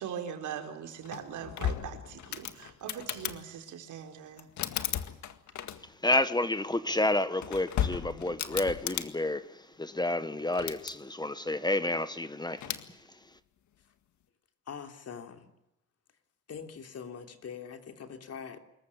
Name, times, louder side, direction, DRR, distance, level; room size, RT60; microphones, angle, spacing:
voice 1, 0.0-4.5, right 8 dB, 80° right, 3.9 m, -41 dB
sound 1, 1.0-3.4 4.4-6.1 7.2-9.1 10.4-10.9 12.6-12.9, left 10 dB, 70° left, 1.9 m, -35 dB
voice 2, 6.0-13.4, left 2 dB, 15° left, 1.3 m, -30 dB
voice 3, 14.7-15.5 16.5-18.6, left 6 dB, 55° left, 3.2 m, -43 dB
26.0 x 14.5 x 9.8 m
cardioid pair, 90°, 30 cm